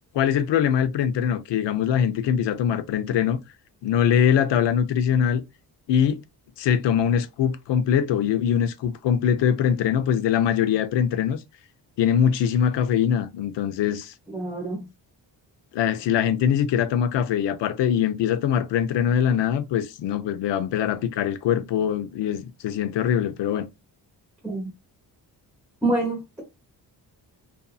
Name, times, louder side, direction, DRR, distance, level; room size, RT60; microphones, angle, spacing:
voice 1, 0.1-3.4 3.8-5.4 5.9-6.2 6.6-11.4 12.0-14.1 15.7-23.7, left 8 dB, 80° left, 0.6 m, -22 dB
voice 2, 14.3-14.8 24.4-24.7 25.8-26.4, right 2 dB, 5° right, 1.1 m, -26 dB
2.6 x 2.6 x 2.2 m
cardioid pair, 130°, 42 cm